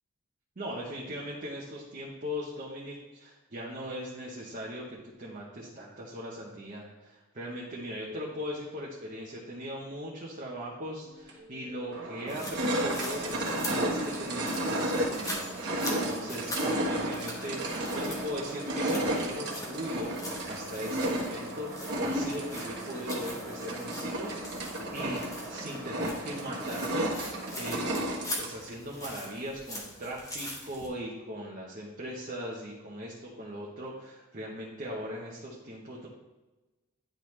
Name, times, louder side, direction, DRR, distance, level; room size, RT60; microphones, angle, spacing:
voice 1, 0.6-15.5 15.9-20.1 20.5-24.4 24.9-27.8 28.4-36.1, equal, 40° right, -4 dB, 0.9 m, -39 dB
sound 1, 11.3-11.4 11.9-28.7, right 1 dB, 55° right, 1.3 m, -33 dB
sound 2, 12.3-30.9, left 1 dB, 15° left, 1.0 m, -43 dB
10.0 x 3.8 x 3.2 m, 1.1 s
head